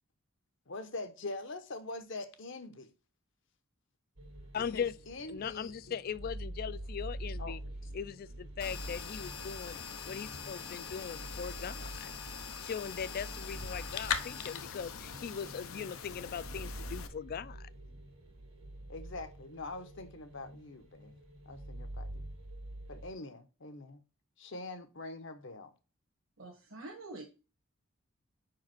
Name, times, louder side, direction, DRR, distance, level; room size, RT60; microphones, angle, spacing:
voice 1, 0.7-2.9 4.7-5.9 7.4-7.5 18.9-21.1 21.5-22.3 22.9-24.0 24.4-25.7, left 2 dB, 65° left, 0.9 m, -44 dB
sound 1, 4.2-23.1, right 1 dB, 85° right, 2.0 m, -46 dB
voice 2, 4.5-4.9 5.3-7.6 7.9-9.8 10.1-12.1 12.6-17.7, left 7 dB, 45° left, 0.3 m, -39 dB
sound 2, 8.6-17.1, left 7 dB, 90° left, 0.7 m, -42 dB
voice 3, 26.4-27.2, right 2 dB, 70° right, 1.3 m, -46 dB
5.1 x 4.8 x 6.0 m
head